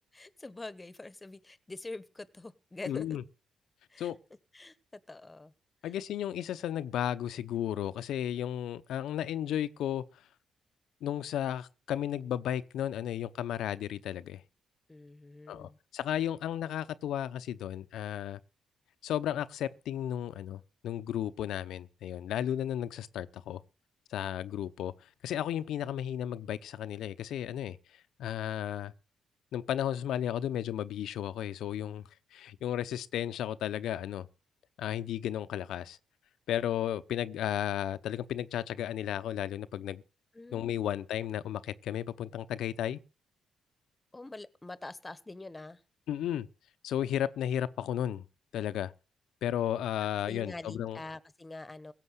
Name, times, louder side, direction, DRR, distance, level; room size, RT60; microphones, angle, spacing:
voice 1, 0.1-3.1 3.9-4.1 4.5-5.5 14.9-15.8 40.3-40.8 44.1-45.8 50.3-51.9, left 2 dB, 20° left, 1.2 m, -45 dB
voice 2, 2.9-3.2 4.0-4.2 5.8-10.0 11.0-14.4 15.5-18.4 19.0-23.6 24.1-24.9 25.2-27.8 28.2-28.9 29.5-32.0 32.3-34.3 34.8-36.0 36.5-40.0 40.5-43.0 46.1-46.5 46.8-48.3 48.5-48.9 49.4-51.0, left 11 dB, 80° left, 0.8 m, -34 dB
17.0 x 6.9 x 8.2 m
cardioid pair, 70°, 0 cm